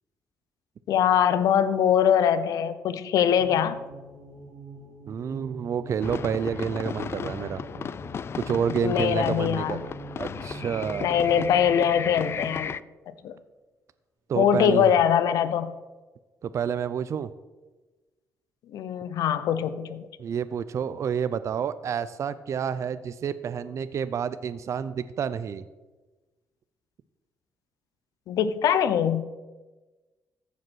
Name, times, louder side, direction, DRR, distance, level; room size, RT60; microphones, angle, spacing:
voice 1, 0.9-3.8 8.8-9.8 11.0-12.8 13.2-13.4 14.4-15.7 18.7-20.1 28.3-29.2, left 8 dB, 80° left, 12 dB, 0.7 m, -22 dB
sound 1, 3.4-12.7, right 3 dB, 85° right, 2.7 m, -44 dB
voice 2, 5.1-7.6 8.4-11.2 14.3-14.9 16.4-17.3 20.2-25.6, right 7 dB, 60° right, 14 dB, 0.5 m, -29 dB
sound 2, 6.0-12.8, left 7 dB, 45° left, 0.4 m, -35 dB
14.5 x 5.3 x 6.2 m, 1.2 s
cardioid pair, 85°, 6 cm